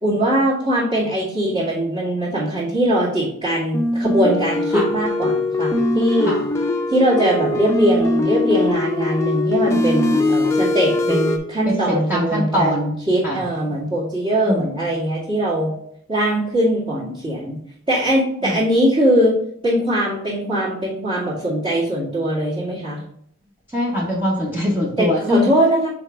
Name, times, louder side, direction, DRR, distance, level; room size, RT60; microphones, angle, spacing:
voice 1, 0.0-6.3 6.9-15.7 16.1-17.6 17.9-19.3 19.6-23.0 25.0-25.9, right 1 dB, 30° right, -11 dB, 2.0 m, -21 dB
sound 1, 3.7-11.4, left 2 dB, 15° left, 0.7 m, -21 dB
voice 2, 11.7-12.9 13.2-13.4 14.4-14.6 18.4-18.7 23.7-25.5, left 1 dB, 10° right, -4 dB, 1.0 m, -22 dB
6.2 x 4.1 x 3.6 m, 0.69 s
head